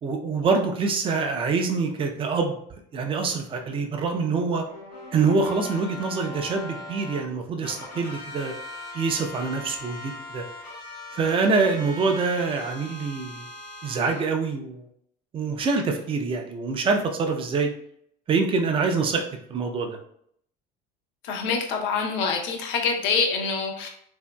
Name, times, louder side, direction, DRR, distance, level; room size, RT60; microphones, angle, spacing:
voice 1, 0.0-2.6 2.9-4.6 5.1-8.5 8.9-10.4 11.1-13.4 13.8-14.8 15.3-17.7 18.3-19.2 19.5-20.0, right 4 dB, 25° right, 4 dB, 0.4 m, -25 dB
sound 1, 4.6-7.2 7.6-14.2, left 2 dB, 90° left, 1.1 m, -40 dB
voice 2, 21.2-23.9, left 5 dB, 65° left, 2 dB, 0.7 m, -25 dB
2.8 x 2.6 x 2.2 m, 0.67 s
supercardioid pair, 105°, 21 cm